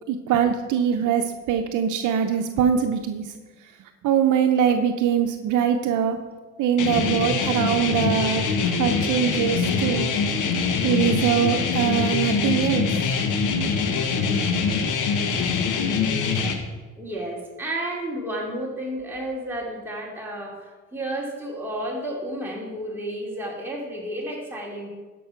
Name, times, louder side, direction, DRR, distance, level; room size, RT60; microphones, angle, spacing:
voice 1, 0.1-3.3 4.0-6.2 6.6-10.1 10.8-12.9, right 8 dB, 85° right, 5 dB, 0.8 m, -22 dB
sound 1, 6.8-16.5, left 5 dB, 90° left, 1.2 m, -24 dB
voice 2, 17.0-24.9, right 1 dB, 5° right, -3 dB, 2.9 m, -32 dB
12.5 x 5.5 x 5.6 m, 1.3 s
cardioid pair, 90°, 30 cm